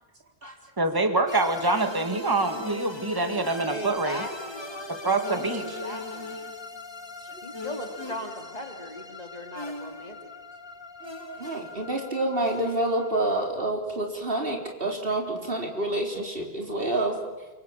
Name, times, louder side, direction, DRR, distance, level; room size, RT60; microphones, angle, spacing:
voice 1, 0.8-4.2 4.9-5.8, right 2 dB, 20° right, 7 dB, 1.9 m, -26 dB
sound 1, 1.3-13.5, left 2 dB, 25° left, 2.0 m, -39 dB
voice 2, 3.7-4.9 5.5-6.4 7.4-10.2, left 1 dB, 40° left, 3 dB, 2.8 m, -38 dB
voice 3, 11.2-17.2, right 1 dB, 65° right, 2 dB, 4.3 m, -28 dB
28.0 x 24.0 x 7.4 m, 1.1 s
omnidirectional pair, 1.1 m